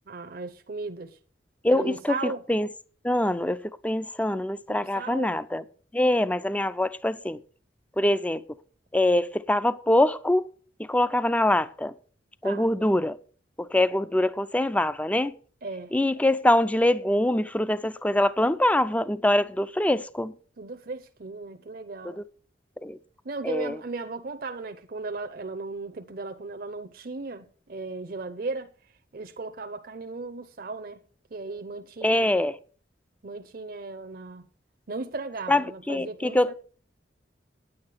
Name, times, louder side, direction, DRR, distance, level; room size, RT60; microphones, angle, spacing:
voice 1, 0.1-1.2 1.7-2.4 4.7-5.3 12.4-12.7 15.6-15.9 20.6-22.2 23.2-28.7 29.1-31.0 31.3-32.4 33.2-34.5 34.9-36.5, right 3 dB, 55° right, 0.8 m, -36 dB
voice 2, 1.6-2.7 3.0-5.6 5.9-7.4 8.0-8.4 8.9-10.5 10.8-11.9 12.4-13.2 13.6-15.3 15.9-20.3 22.0-22.2 22.8-23.0 23.4-23.8 32.0-32.6 35.5-36.5, left 1 dB, 10° left, 0.4 m, -24 dB
9.7 x 8.6 x 6.5 m
head